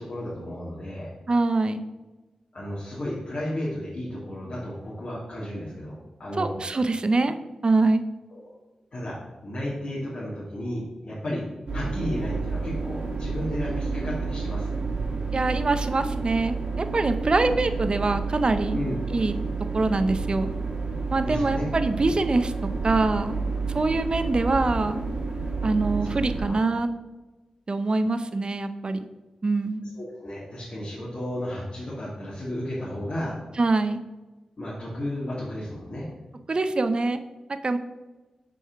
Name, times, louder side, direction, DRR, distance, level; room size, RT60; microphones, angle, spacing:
voice 1, 0.0-1.1 2.5-6.6 8.3-8.5 8.9-11.5 11.7-14.8 18.7-19.0 21.2-21.6 22.0-22.1 26.0-26.6 29.9-33.4 34.6-36.1, left 1 dB, 60° left, -7 dB, 2.1 m, -33 dB
voice 2, 1.3-1.8 6.4-7.3 7.6-8.0 15.3-18.8 19.1-19.3 19.7-20.5 21.1-22.5 22.8-23.4 23.7-25.0 25.6-26.9 27.7-29.0 29.4-29.8 33.6-34.0 36.5-37.2 37.6-37.8, right 3 dB, 50° right, 9 dB, 0.6 m, -24 dB
sound 1, 11.7-26.5, right 4 dB, 65° right, 1.8 m, -30 dB
5.3 x 4.7 x 5.8 m, 1.1 s
cardioid pair, 40°, 2 cm